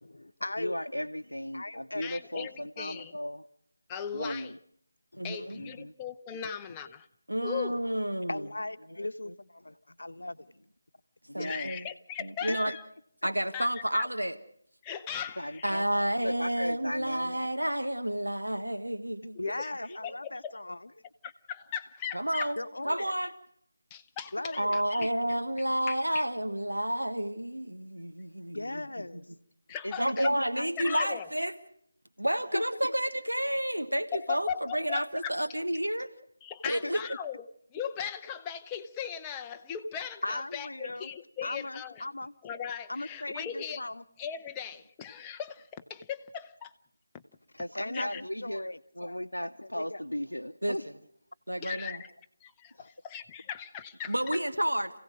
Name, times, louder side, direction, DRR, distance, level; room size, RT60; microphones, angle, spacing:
voice 1, 0.0-0.7 1.5-2.1 5.1-5.3 8.3-10.5 12.5-12.8 19.4-20.9 22.6-23.1 24.3-25.1 28.5-29.3 32.5-32.9 36.8-36.9 40.2-41.1 41.4-42.3 42.9-44.0 47.5-49.3 49.6-50.0 52.8-52.9, left 2 dB, 65° left, 12 dB, 1.0 m, -38 dB
voice 2, 0.6-3.4 4.1-4.6 5.6-5.9 9.3-9.4 11.3-11.7 15.4-15.8 16.2-17.5 19.8-20.1 24.5-24.6 29.8-30.7 47.6-50.9 52.8-52.9, equal, 90° left, 3 dB, 0.8 m, -36 dB
voice 3, 2.0-3.1 3.9-4.5 5.2-7.1 7.4-7.7 11.4-12.8 13.5-14.0 14.8-15.8 19.4-19.7 20.0-20.5 21.2-22.5 23.9-25.1 25.9-26.2 29.7-30.3 30.8-31.3 34.1-35.3 36.4-42.0 42.4-43.8 44.2-46.7 47.9-48.2 51.6-52.0 52.4-54.1, left 8 dB, 15° left, 6 dB, 0.8 m, -38 dB
voice 4, 5.2-5.6 7.3-8.5 11.3-11.9 12.2-12.7 13.2-14.4 15.6-19.4 22.1-22.6 22.8-23.3 24.6-28.9 30.0-31.5 32.2-36.1 36.7-37.0 50.6-50.8 51.5-52.0 54.1-55.0, right 1 dB, 85° right, 8 dB, 1.4 m, -30 dB
28.0 x 16.5 x 6.4 m, 0.68 s
figure-of-eight pair, 160°, 0 cm